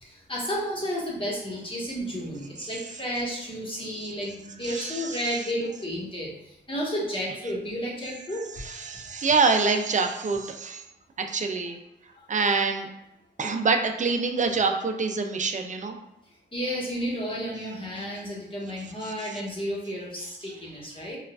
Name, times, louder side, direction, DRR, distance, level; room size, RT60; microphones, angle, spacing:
voice 1, 0.0-8.4 16.5-21.2, equal, 25° left, -4 dB, 1.3 m, -32 dB
voice 2, 4.7-5.4 8.8-10.8 11.2-11.8 12.3-12.9 13.4-16.0 19.3-19.4, right 4 dB, 40° right, 5 dB, 0.5 m, -25 dB
4.4 x 2.4 x 2.4 m, 0.90 s
cardioid pair, 70°, 19 cm